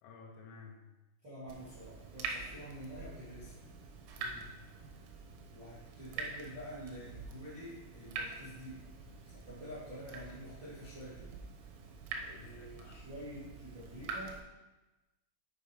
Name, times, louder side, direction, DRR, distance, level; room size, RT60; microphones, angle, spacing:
voice 1, 0.0-0.8 4.2-4.6 12.2-13.1, left 5 dB, 85° left, 0 dB, 4.0 m, -54 dB
voice 2, 1.2-3.6 5.5-8.8 9.3-11.3 12.4-14.4, equal, 45° right, -10 dB, 1.5 m, -48 dB
Water tap faucet / Drip, 1.5-14.4, right 4 dB, 90° right, 3.9 m, -46 dB
9.1 x 5.5 x 5.0 m, 1.1 s
omnidirectional pair, 5.9 m